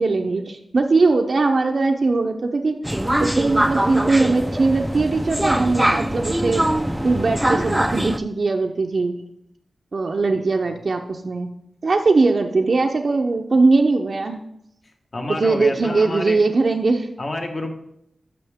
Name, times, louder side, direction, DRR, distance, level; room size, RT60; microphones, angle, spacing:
voice 1, 0.0-2.8 3.2-6.6 7.0-9.1 9.9-11.5 11.8-14.4 15.4-17.1, right 3 dB, 55° right, 3 dB, 0.6 m, -20 dB
sound 1, 2.8-8.2, right 1 dB, 10° right, 0.4 m, -22 dB
voice 2, 15.1-16.4 17.2-17.7, left 2 dB, 45° left, 3 dB, 1.4 m, -28 dB
12.0 x 6.2 x 3.5 m, 0.78 s
wide cardioid pair, 95°, 0 cm